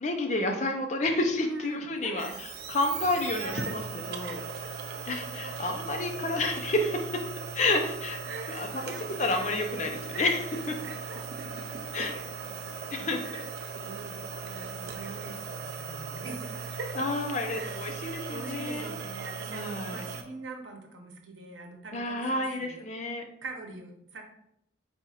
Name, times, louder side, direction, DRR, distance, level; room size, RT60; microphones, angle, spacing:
voice 1, 0.0-3.8 4.1-4.4 5.1-6.9 7.5-8.2 8.6-8.7 9.2-10.4 10.7-10.8 11.9-12.1 12.9-13.4 17.0-18.9 19.5-20.0 21.9-23.3, left 2 dB, 40° left, 4 dB, 0.5 m, -30 dB
voice 2, 1.4-2.3 3.0-5.7 8.2-9.7 10.1-13.5 13.8-17.0 17.5-18.0 18.3-22.9 23.4-24.2, right 3 dB, 90° right, 3 dB, 0.8 m, -44 dB
sound 1, 2.2-20.2, right 5 dB, 55° right, 0.4 m, -38 dB
4.1 x 2.4 x 4.1 m, 0.75 s
head